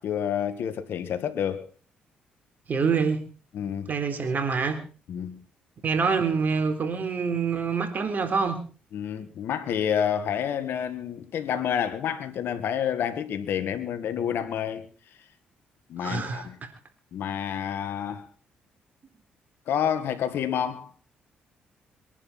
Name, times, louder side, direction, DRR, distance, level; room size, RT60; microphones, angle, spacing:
voice 1, 0.0-1.7 3.5-3.9 5.1-5.4 8.9-14.9 15.9-16.6 17.1-18.3 19.7-20.9, left 8 dB, 70° left, 1.8 m, -29 dB
voice 2, 2.7-3.2 3.9-4.8 5.8-8.6 16.0-16.7, right 5 dB, 50° right, 3.9 m, -26 dB
23.0 x 11.0 x 4.3 m
supercardioid pair, 60°, 4 cm